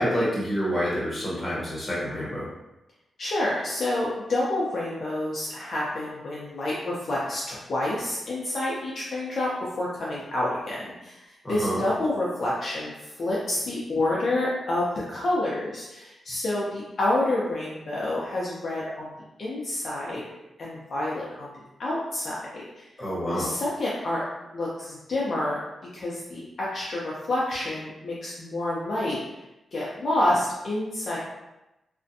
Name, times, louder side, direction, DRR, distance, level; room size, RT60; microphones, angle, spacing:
voice 1, 0.0-2.5 11.4-11.8 23.0-23.5, equal, 15° left, -8 dB, 1.0 m, -27 dB
voice 2, 3.2-19.1 19.4-20.2 20.6-22.8 23.3-24.2 24.5-25.6 25.9-29.2 29.7-31.2, left 1 dB, 50° left, -6 dB, 0.4 m, -28 dB
2.5 x 2.1 x 2.6 m, 0.96 s
wide cardioid pair, 135°, 0 cm